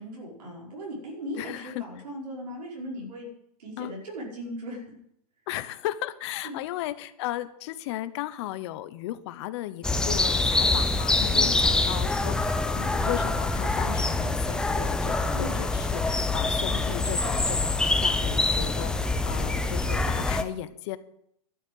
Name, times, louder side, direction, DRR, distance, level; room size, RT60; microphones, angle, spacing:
voice 1, 0.0-3.3 3.6-4.8 6.4-6.6 11.3-11.7 15.3-15.6, equal, 85° right, -3 dB, 5.1 m, -38 dB
voice 2, 1.4-1.8 3.8-3.9 5.5-21.0, left 14 dB, 45° left, 14 dB, 0.9 m, -35 dB
sound 1, 9.8-20.4, left 2 dB, 5° left, 0.5 m, -25 dB
12.0 x 7.4 x 7.9 m, 0.74 s
hypercardioid pair, 145°, 20 cm